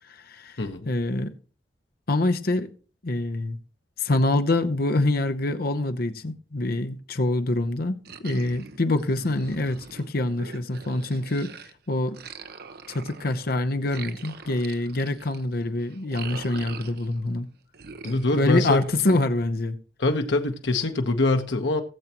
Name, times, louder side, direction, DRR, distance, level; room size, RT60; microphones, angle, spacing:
voice 1, 0.1-0.6 0.9-1.3 2.1-2.7 3.0-3.6 4.0-11.5 11.9-12.2 12.9-17.5 18.3-19.8, left 2 dB, 60° left, 0.9 m, -25 dB
voice 2, 0.6-0.9 18.0-19.2 20.0-21.8, left 2 dB, 85° left, 1.2 m, -24 dB
sound 1, 8.1-11.7 12.1-17.3 17.7-19.5, right 5 dB, 60° right, 0.8 m, -43 dB
19.0 x 7.4 x 3.0 m
head